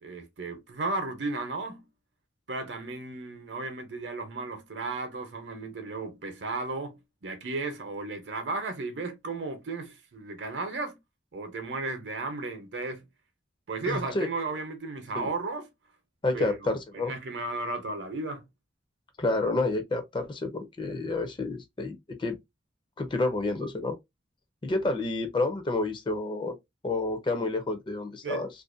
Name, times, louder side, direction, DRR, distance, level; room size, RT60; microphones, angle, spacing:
voice 1, 0.0-1.9 2.5-11.0 11.3-13.0 13.7-15.7 16.3-18.4 28.2-28.4, right 3 dB, 70° right, 0.7 m, -34 dB
voice 2, 13.9-14.3 15.1-15.3 16.2-17.1 19.2-22.4 23.0-24.0 24.6-26.5 26.8-28.5, left 2 dB, 25° left, 0.4 m, -29 dB
2.5 x 2.1 x 2.4 m
head